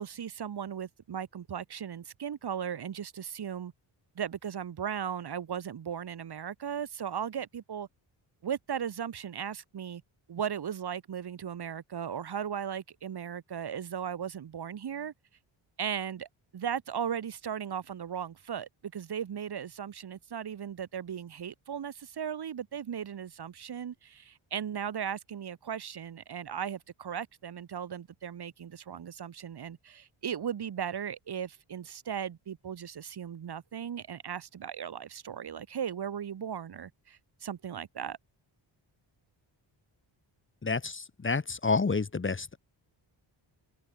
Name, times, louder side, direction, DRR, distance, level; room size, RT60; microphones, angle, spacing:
voice 1, 0.0-3.7 4.2-7.9 8.4-10.0 10.3-15.1 15.8-16.3 16.5-38.2, right 8 dB, 50° right, 1.6 m, -37 dB
voice 2, 40.6-42.6, left 4 dB, 25° left, 1.6 m, -29 dB
open air
wide cardioid pair, 170°, 48 cm